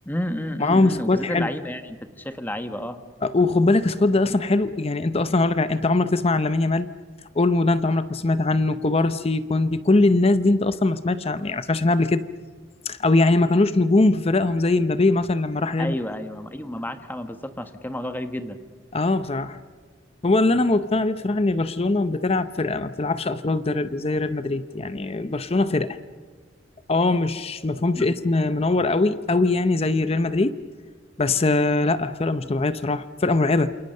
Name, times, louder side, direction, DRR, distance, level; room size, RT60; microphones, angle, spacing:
voice 1, 0.0-3.0 15.8-18.6 28.0-28.1, left 1 dB, 10° left, 8 dB, 1.3 m, -31 dB
voice 2, 0.6-1.5 3.2-6.9 7.4-12.3 12.9-16.0 18.9-19.6 20.2-26.0 26.9-30.6 31.2-33.8, left 2 dB, 30° left, 12 dB, 0.7 m, -21 dB
28.0 x 28.0 x 6.6 m, 1.5 s
head